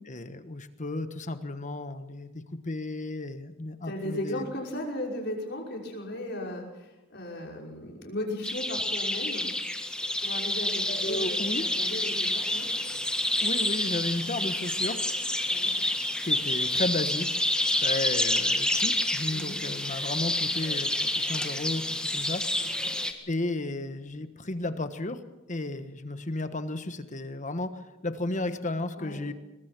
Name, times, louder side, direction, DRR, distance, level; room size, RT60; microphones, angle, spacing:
voice 1, 0.1-4.4 10.9-11.7 13.4-15.0 16.2-17.4 17.7-22.4 23.3-25.2 25.5-29.3, left 2 dB, 40° left, 10 dB, 1.3 m, -33 dB
voice 2, 3.8-9.5 10.2-12.7 15.5-15.7 19.3-19.6 22.6-22.9 29.0-29.2, left 1 dB, 55° left, 0 dB, 5.7 m, -36 dB
sound 1, 8.4-23.1, left 1 dB, 5° left, 1.7 m, -28 dB
22.5 x 20.5 x 6.1 m, 1.0 s
head